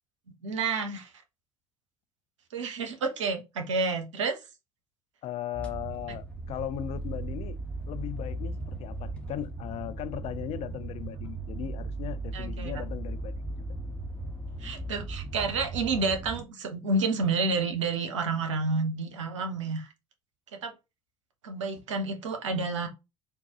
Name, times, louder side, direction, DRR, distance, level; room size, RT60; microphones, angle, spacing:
voice 1, 0.4-1.1 2.5-4.4 12.3-12.8 14.6-19.9 20.6-20.7 21.4-22.9, right 3 dB, 75° right, 0.7 m, -29 dB
voice 2, 5.2-7.6 7.9-13.4, left 11 dB, 40° left, 0.4 m, -37 dB
sound 1, 5.5-16.4, right 2 dB, 10° left, 1.0 m, -37 dB
3.7 x 2.3 x 2.9 m
figure-of-eight pair, 60°, 16 cm